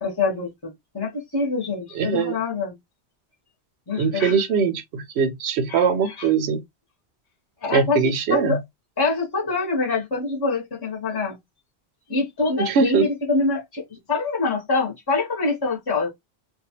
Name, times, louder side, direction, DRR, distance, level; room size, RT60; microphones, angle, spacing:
voice 1, 0.0-2.7 3.9-4.4 5.7-6.3 7.6-8.6 9.0-11.4 12.1-16.1, left 3 dB, 25° left, 0.8 m, -25 dB
voice 2, 1.9-2.4 4.0-6.6 7.7-8.6 12.6-13.0, right 6 dB, 80° right, 0.9 m, -21 dB
2.6 x 2.3 x 2.8 m
omnidirectional pair, 1.1 m